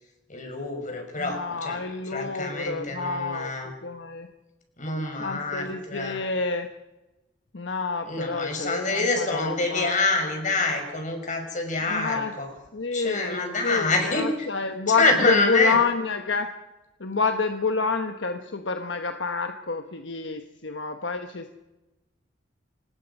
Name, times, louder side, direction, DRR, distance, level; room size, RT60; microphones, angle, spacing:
voice 1, 0.3-1.8 2.1-3.7 4.8-6.2 8.1-12.5 12.9-14.5 15.0-15.8, left 3 dB, 45° left, 4 dB, 5.5 m, -26 dB
voice 2, 1.2-4.3 5.2-6.7 7.5-9.9 11.9-12.3 12.7-16.5 17.0-21.6, left 4 dB, 70° left, 6 dB, 1.2 m, -28 dB
26.0 x 19.5 x 5.5 m, 1.0 s
head